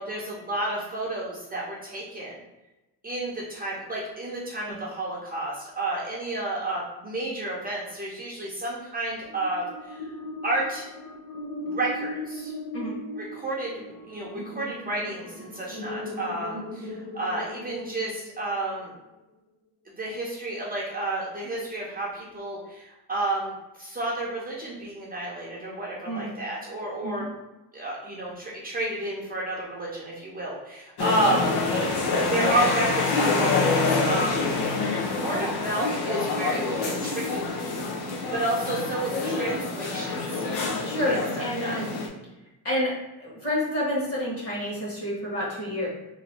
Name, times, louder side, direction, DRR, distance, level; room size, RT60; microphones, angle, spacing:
voice 1, 0.0-2.4 3.0-10.1 10.4-10.9 11.6-12.5 13.2-13.7 14.1-18.9 19.9-23.5 23.8-27.3 27.7-37.5 38.3-40.4 41.1-41.9, right 1 dB, 25° right, -4 dB, 0.6 m, -31 dB
sound 1, 9.3-18.6, left 1 dB, 20° left, 1.0 m, -38 dB
sound 2, 31.0-42.1, left 3 dB, 90° left, 0.9 m, -26 dB
voice 2, 40.8-42.0 42.6-42.9 43.2-45.9, left 1 dB, 35° left, -5 dB, 1.5 m, -29 dB
3.0 x 2.6 x 4.2 m, 1.0 s
cardioid pair, 165°, 38 cm